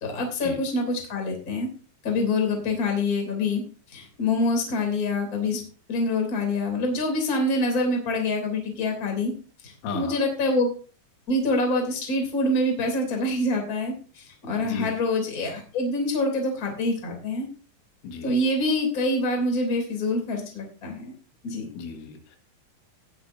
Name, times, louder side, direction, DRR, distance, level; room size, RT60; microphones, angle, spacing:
voice 1, 0.0-1.7 2.0-3.6 3.9-5.6 5.9-9.3 9.6-10.7 11.3-17.5 18.2-21.1 21.4-21.6, left 2 dB, 25° left, 3 dB, 2.7 m, -26 dB
voice 2, 9.8-10.2 14.6-14.9 18.0-18.3 21.8-22.4, left 5 dB, 80° left, 4 dB, 4.1 m, -34 dB
18.5 x 7.6 x 2.7 m, 0.37 s
omnidirectional pair, 5.5 m